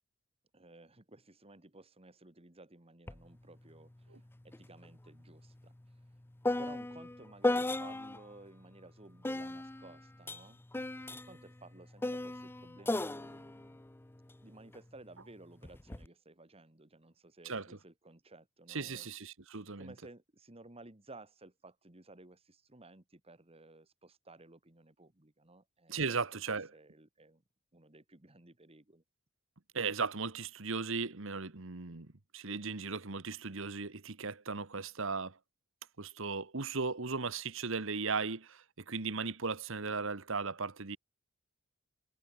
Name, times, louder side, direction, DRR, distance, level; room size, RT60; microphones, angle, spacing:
voice 1, 0.5-5.7 6.6-10.6 11.1-13.8 14.4-19.1 19.8-27.4 27.7-29.0, right 2 dB, 30° right, 2.0 m, -56 dB
sound 1, 3.1-3.2 3.6-8.3 9.2-14.8 15.6-16.1, left 2 dB, 10° left, 0.5 m, -37 dB
voice 2, 18.7-19.9 25.9-26.7 29.7-35.4 36.0-41.0, right 4 dB, 65° right, 1.5 m, -37 dB
head